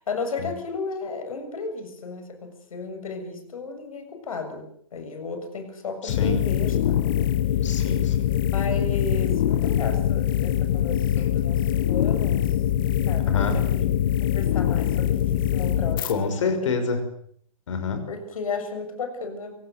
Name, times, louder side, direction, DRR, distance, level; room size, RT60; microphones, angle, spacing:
voice 1, 0.0-7.0 8.5-12.5 13.0-13.9 14.3-16.1 16.4-16.7 18.1-19.5, left 4 dB, 75° left, 7 dB, 7.2 m, -34 dB
voice 2, 6.0-6.4 7.6-8.3 13.3-13.6 16.0-17.0 17.7-18.0, left 4 dB, 60° left, 8 dB, 6.0 m, -27 dB
sound 1, 6.1-16.1, left 11 dB, 40° left, 1.5 m, -23 dB
24.0 x 17.5 x 7.8 m, 0.64 s
hypercardioid pair, 165°, 18 cm